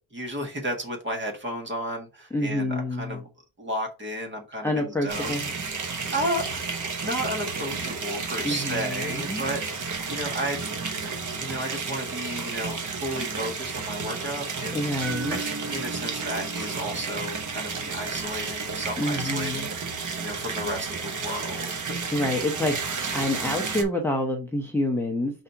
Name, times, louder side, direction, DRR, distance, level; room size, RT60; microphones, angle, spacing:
voice 1, 0.1-3.2 3.6-5.4 6.1-10.6 11.4-14.9 15.3-22.0, equal, 25° right, 1.6 m, -33 dB
voice 2, 2.3-3.2 4.6-5.5 8.4-9.4 14.7-15.4 19.0-19.7 22.1-25.4, left 1 dB, 5° left, 0.7 m, -28 dB
sound 1, 5.1-23.8, right 4 dB, 45° right, 1.2 m, -32 dB
sound 2, 15.0-19.1, right 3 dB, 65° right, 2.2 m, -40 dB
5.0 x 4.2 x 4.5 m
wide cardioid pair, 175°, 45 cm